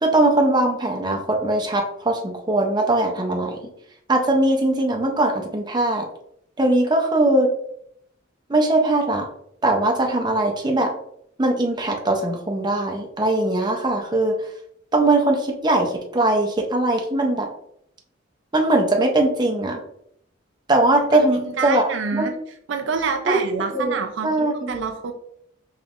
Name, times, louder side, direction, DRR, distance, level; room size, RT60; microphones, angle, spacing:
voice 1, 0.0-3.6 4.1-6.1 6.6-7.5 8.5-9.3 9.6-10.9 11.4-14.4 14.9-17.5 18.5-19.8 20.7-21.9 22.2-22.3 23.3-23.4 23.7-24.8, right 2 dB, 20° right, 2 dB, 0.6 m, -20 dB
voice 2, 21.0-22.3 22.7-25.1, right 5 dB, 65° right, 5 dB, 0.4 m, -27 dB
5.2 x 3.1 x 2.4 m, 0.71 s
head